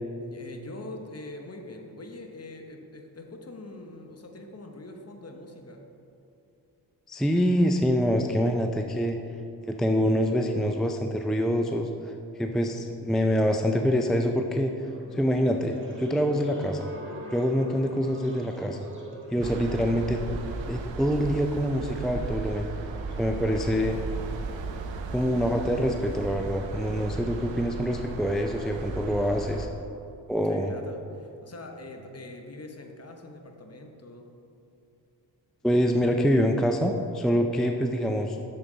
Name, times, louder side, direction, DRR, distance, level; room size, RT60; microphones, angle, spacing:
voice 1, 0.2-5.9 23.1-23.7 30.3-34.3, left 2 dB, 35° left, 3 dB, 1.1 m, -43 dB
voice 2, 7.1-9.2 9.7-14.7 15.1-16.9 17.3-18.9 19.3-20.2 20.7-22.7 23.2-24.0 25.1-29.7 30.3-30.7 35.6-38.4, equal, ahead, 4 dB, 0.4 m, -25 dB
sound 1, 14.8-20.2, right 1 dB, 25° right, 1.7 m, -45 dB
sound 2, 19.4-29.7, right 4 dB, 90° right, 0.7 m, -36 dB
7.2 x 6.9 x 3.9 m, 2.8 s
cardioid pair, 50°, 44 cm